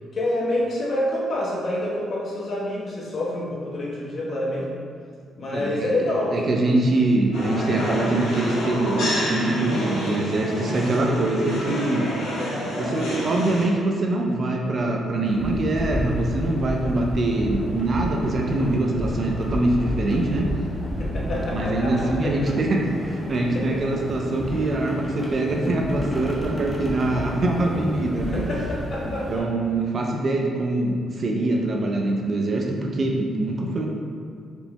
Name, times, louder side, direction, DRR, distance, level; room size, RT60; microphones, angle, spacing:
voice 1, 0.1-4.7 5.3-6.4 12.4-12.8 21.0-22.5 23.5-23.8 28.3-29.5, left 1 dB, 50° left, -6 dB, 1.1 m, -27 dB
voice 2, 5.5-5.9 6.3-12.1 12.7-20.5 21.5-28.4 29.3-33.9, right 2 dB, 45° right, 0 dB, 0.5 m, -24 dB
sound 1, 7.3-13.7, left 1 dB, 80° left, 1.5 m, -28 dB
sound 2, 15.2-29.4, equal, 25° left, 0.9 m, -31 dB
4.4 x 3.9 x 2.2 m, 2.1 s
cardioid pair, 90°, 0 cm